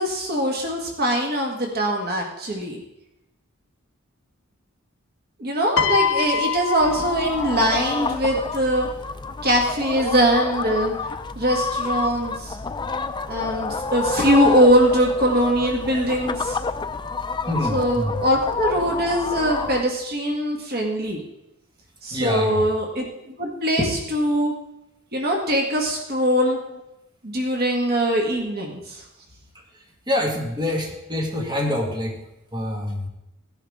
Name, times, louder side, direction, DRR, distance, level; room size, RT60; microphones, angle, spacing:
voice 1, 0.0-2.8 5.4-8.9 9.4-10.9 11.4-12.6 13.3-16.6 17.7-21.2 22.0-23.8 24.1-24.5 25.1-26.6 27.2-29.0, equal, 45° right, 0 dB, 1.7 m, -22 dB
Piano, 5.8-8.1 9.2-9.4, left 6 dB, 65° left, 0.6 m, -25 dB
sound 1, 6.8-19.8, left 4 dB, 20° left, 0.4 m, -29 dB
voice 2, 17.5-18.2 22.1-22.6 23.8-23.9 26.7-26.8 29.7-32.2 32.5-33.1, left 1 dB, 20° right, 0 dB, 1.9 m, -26 dB
17.0 x 10.5 x 3.6 m, 0.88 s
head